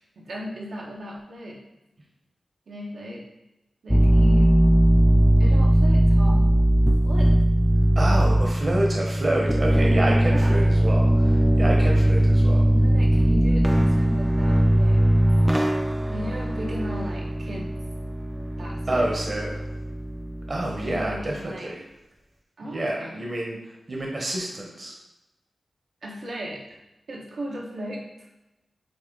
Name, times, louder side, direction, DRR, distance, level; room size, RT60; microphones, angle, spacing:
voice 1, 0.1-1.6 2.7-3.2 3.8-4.5 5.4-6.5 7.0-7.3 10.2-10.6 12.7-15.1 16.1-17.7 18.6-19.1 20.7-21.7 22.6-23.2 26.0-26.8 27.1-28.1, equal, 85° right, -3 dB, 1.5 m, -36 dB
sound 1, 3.9-21.3, right 1 dB, 5° right, 0.3 m, -20 dB
voice 2, 7.9-12.7 18.9-19.7 20.5-21.9 22.6-25.0, right 1 dB, 40° right, -1 dB, 1.0 m, -28 dB
8.3 x 2.9 x 3.9 m, 0.96 s
wide cardioid pair, 130°, 0 cm